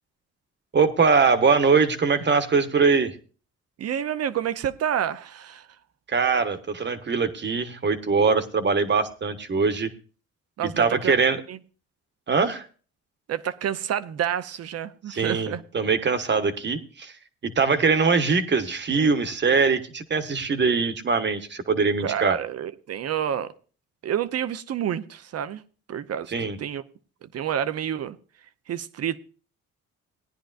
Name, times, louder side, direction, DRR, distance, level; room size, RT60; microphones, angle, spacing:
voice 1, 0.7-3.1 6.1-9.9 10.6-11.4 12.3-12.7 15.1-17.2 17.4-22.4 26.3-26.6, right 5 dB, 35° right, 1.3 m, -22 dB
voice 2, 3.8-5.7 10.6-11.1 11.5-11.6 13.3-15.6 22.0-23.5 24.0-25.6 25.9-26.8 27.2-28.2 28.7-29.2, right 9 dB, 55° right, 0.7 m, -29 dB
18.0 x 10.0 x 2.5 m
cardioid pair, 90°, 30 cm